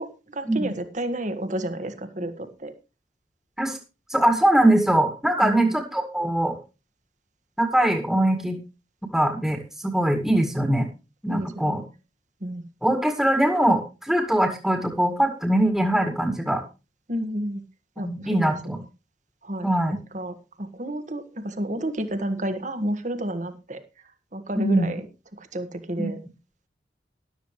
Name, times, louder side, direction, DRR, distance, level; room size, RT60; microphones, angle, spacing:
voice 1, 0.0-2.7 5.4-5.7 11.3-11.8 12.4-12.7 17.1-17.6 18.0-18.9 19.4-19.7 20.1-23.8 24.3-25.0 25.4-26.2, right 1 dB, 45° right, 8 dB, 1.7 m, -31 dB
voice 2, 4.1-6.6 7.6-8.6 9.1-10.9 11.2-11.8 12.8-16.6 18.0-18.8 19.6-20.0 24.6-24.9 26.0-26.1, right 1 dB, ahead, 2 dB, 2.0 m, -22 dB
13.5 x 12.5 x 3.2 m, 0.29 s
head